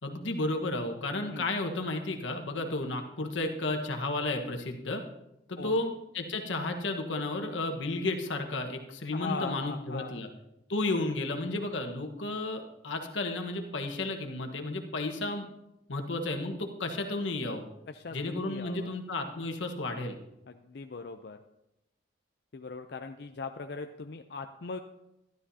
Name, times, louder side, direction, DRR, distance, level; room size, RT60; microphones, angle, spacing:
voice 1, 0.0-5.0 5.5-10.3 10.7-15.4 15.9-17.6 18.1-20.2, left 2 dB, 90° left, 4 dB, 1.3 m, -33 dB
voice 2, 9.1-10.2 17.9-18.9 20.5-21.4 22.5-24.8, left 4 dB, 60° left, 6 dB, 0.5 m, -40 dB
12.5 x 12.0 x 2.8 m, 0.88 s
head